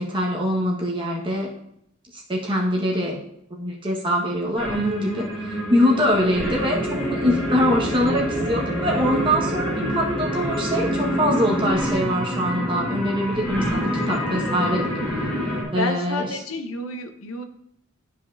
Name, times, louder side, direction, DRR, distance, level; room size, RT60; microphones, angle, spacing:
voice 1, 0.0-1.5 2.1-3.2 3.5-14.9 15.7-16.4, equal, 25° right, -3 dB, 1.4 m, -23 dB
sound 1, 4.6-15.6, equal, 5° left, 2.4 m, -26 dB
voice 2, 15.8-17.4, left 2 dB, 75° left, 7 dB, 0.8 m, -29 dB
12.0 x 4.9 x 2.7 m, 0.74 s
head